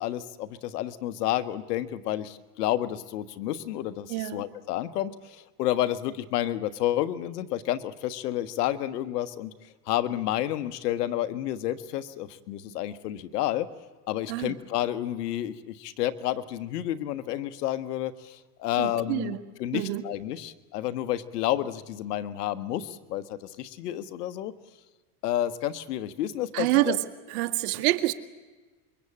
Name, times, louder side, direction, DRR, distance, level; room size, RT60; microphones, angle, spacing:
voice 1, 0.0-9.5 9.9-13.7 14.1-24.5 25.2-27.0, left 13 dB, 85° left, 13 dB, 1.5 m, -30 dB
voice 2, 4.1-4.4 14.3-14.5 18.8-19.4 19.7-20.0 26.5-27.0 27.3-28.1, right 17 dB, 70° right, 10 dB, 1.9 m, -26 dB
27.0 x 23.0 x 8.7 m, 1.3 s
supercardioid pair, 110°, 46 cm